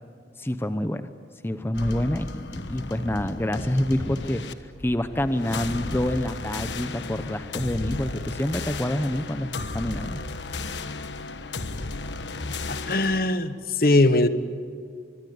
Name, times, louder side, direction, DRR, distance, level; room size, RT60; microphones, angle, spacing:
voice 1, 0.4-1.1 1.4-10.2, left 1 dB, 15° left, 10 dB, 0.7 m, -27 dB
sound 1, 1.7-13.2, left 3 dB, 90° left, 1.3 m, -34 dB
voice 2, 12.7-14.3, left 2 dB, 55° left, 12 dB, 1.2 m, -21 dB
24.0 x 23.0 x 9.5 m, 2.3 s
head